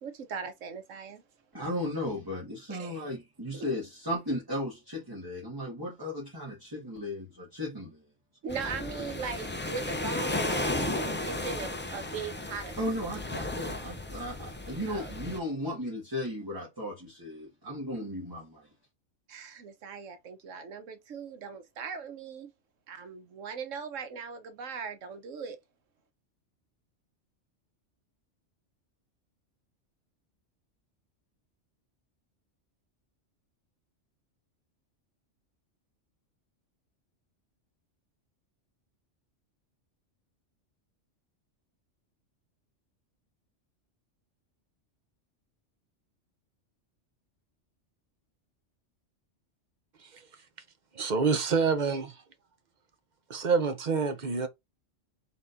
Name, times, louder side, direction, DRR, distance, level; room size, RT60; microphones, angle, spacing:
voice 1, 0.0-1.2 2.7-3.0 8.4-13.0 14.9-15.1 19.3-22.5 22.9-25.6, right 5 dB, 90° right, 1.2 m, -39 dB
voice 2, 1.5-8.0 12.8-18.7, left 1 dB, 20° right, 1.7 m, -35 dB
sound 1, 8.5-15.4, left 2 dB, 20° left, 0.3 m, -34 dB
voice 3, 50.9-52.2 53.3-54.5, right 5 dB, 45° right, 0.8 m, -27 dB
4.2 x 3.8 x 2.6 m
omnidirectional pair, 1.3 m